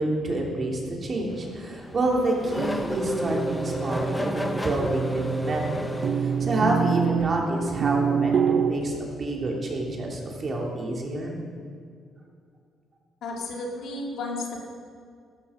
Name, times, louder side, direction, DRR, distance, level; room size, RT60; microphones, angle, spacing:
voice 1, 0.0-5.9 6.4-11.3, right 2 dB, 40° right, -1 dB, 3.1 m, -28 dB
Race car auto racing / Accelerating revving vroom, 1.3-6.9, left 1 dB, 10° left, 1.2 m, -32 dB
sound 1, 2.4-8.7, right 7 dB, 60° right, 0.7 m, -27 dB
voice 2, 13.2-14.7, left 2 dB, 75° left, -1 dB, 2.7 m, -33 dB
13.0 x 13.0 x 5.2 m, 2.2 s
cardioid pair, 90°, 0 cm